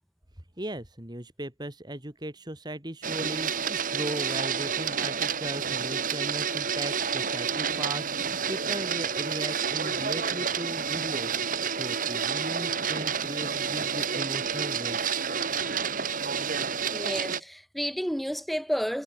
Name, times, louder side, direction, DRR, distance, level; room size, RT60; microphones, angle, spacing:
voice 1, 0.6-15.2, right 1 dB, 25° right, 2.9 m, -38 dB
Printer, 3.0-17.4, right 6 dB, 50° right, 1.8 m, -29 dB
voice 2, 16.9-19.0, equal, ahead, 4.5 m, -31 dB
head